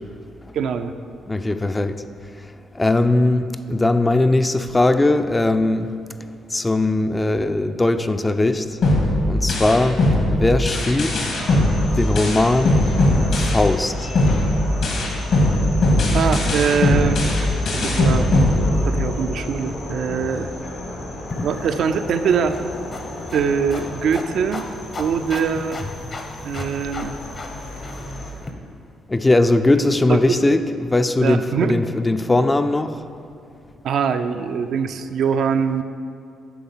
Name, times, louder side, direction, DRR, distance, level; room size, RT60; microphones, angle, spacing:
voice 1, 0.5-0.9 16.1-17.5 17.8-18.5 18.8-20.5 21.4-22.6 23.3-24.6 25.0-25.8 26.4-27.2 30.1-30.4 31.2-31.7 33.8-35.8, right 6 dB, 70° right, 8 dB, 0.4 m, -22 dB
voice 2, 1.3-2.0 2.4-5.9 6.5-8.8 9.2-11.1 11.9-12.8 13.3-14.1 29.1-33.0, left 2 dB, 20° left, 10 dB, 0.4 m, -19 dB
sound 1, 8.8-13.8 14.1-19.2, left 1 dB, 70° left, 1.9 m, -19 dB
sound 2, 11.3-28.3, left 1 dB, 85° left, 1.7 m, -33 dB
sound 3, 21.3-28.5, left 2 dB, 40° left, 0.8 m, -35 dB
9.3 x 3.9 x 7.2 m, 2.6 s
cardioid pair, 90°, 0 cm